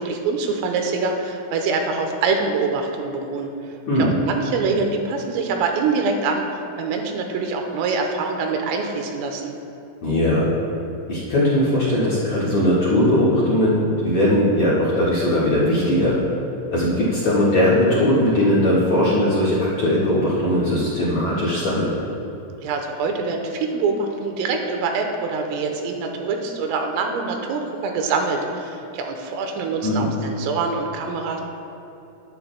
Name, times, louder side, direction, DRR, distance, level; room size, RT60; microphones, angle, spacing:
voice 1, 0.0-3.5 4.0-9.5 22.6-31.4, right 4 dB, 85° right, 3 dB, 3.5 m, -24 dB
voice 2, 10.0-10.5 11.1-16.2 16.7-22.0 29.8-30.1, left 1 dB, 55° left, -8 dB, 2.1 m, -19 dB
20.0 x 11.0 x 2.3 m, 2.9 s
omnidirectional pair, 5.9 m